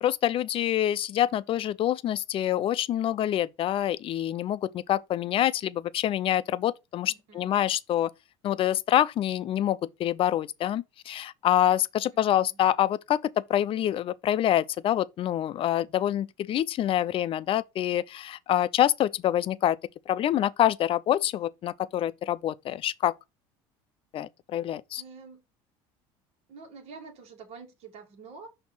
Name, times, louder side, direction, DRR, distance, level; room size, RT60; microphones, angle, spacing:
voice 1, 0.0-8.1 8.4-19.8 20.1-23.1 24.1-25.0, left 11 dB, 45° left, 0.5 m, -26 dB
voice 2, 7.1-7.6 12.1-12.6 25.0-25.4 26.5-28.5, right 4 dB, 55° right, 1.6 m, -47 dB
5.9 x 2.9 x 5.4 m
supercardioid pair, 90°, 13 cm